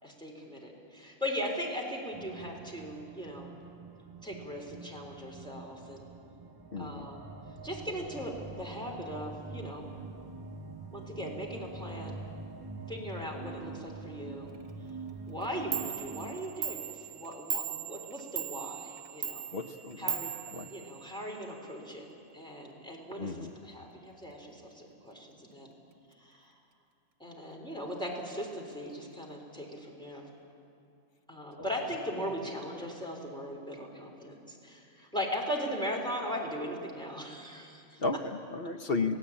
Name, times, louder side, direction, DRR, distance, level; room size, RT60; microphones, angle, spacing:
voice 1, 0.0-3.5 4.2-6.1 6.8-7.3 7.6-9.9 10.9-12.2 12.9-14.5 15.3-19.5 20.0-20.3 20.7-22.1 22.3-25.7 26.2-26.5 27.2-30.3 31.3-38.0, equal, 5° left, -1 dB, 3.9 m, -39 dB
sound 1, 2.1-16.4, right 3 dB, 30° right, 0.4 m, -45 dB
voice 2, 6.7-7.1 19.5-20.2 20.5-20.7 23.2-23.5 31.6-31.7 38.0-39.2, left 3 dB, 45° left, 7 dB, 1.0 m, -34 dB
Clock, 15.4-15.5 15.7-21.4, right 9 dB, 75° right, 1.4 m, -38 dB
27.5 x 17.0 x 8.7 m, 2.6 s
omnidirectional pair, 1.5 m